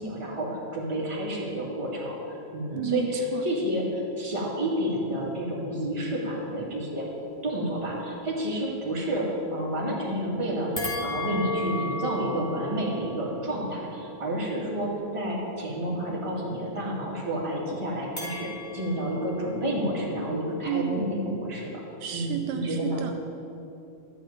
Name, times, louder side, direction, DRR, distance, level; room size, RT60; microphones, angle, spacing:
voice 1, 0.0-2.2 2.5-7.1 7.4-21.8 22.1-23.0, equal, 10° right, -5 dB, 2.0 m, -30 dB
voice 2, 2.7-3.5 20.7-21.0 22.0-23.1, right 8 dB, 80° right, 5 dB, 1.9 m, -31 dB
sound 1, 10.8-15.2 18.2-20.7, left 1 dB, 30° left, 0.6 m, -36 dB
13.0 x 5.5 x 9.1 m, 2.8 s
omnidirectional pair, 3.4 m